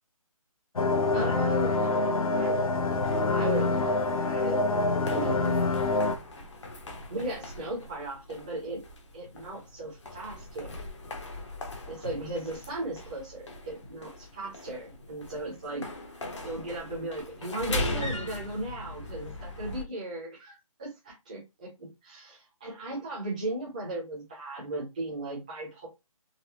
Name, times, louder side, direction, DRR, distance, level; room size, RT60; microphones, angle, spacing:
sound 1, 0.8-6.2, left 3 dB, 75° left, 0.8 m, -26 dB
voice 1, 1.1-2.6 3.3-4.7 5.0-5.6 7.1-8.8 9.1-10.8 11.9-25.9, right 2 dB, 15° right, -6 dB, 0.7 m, -37 dB
sound 2, 2.9-19.8, left 1 dB, 55° left, 1.0 m, -40 dB
4.0 x 2.2 x 2.9 m, 0.23 s
hypercardioid pair, 180°, 18 cm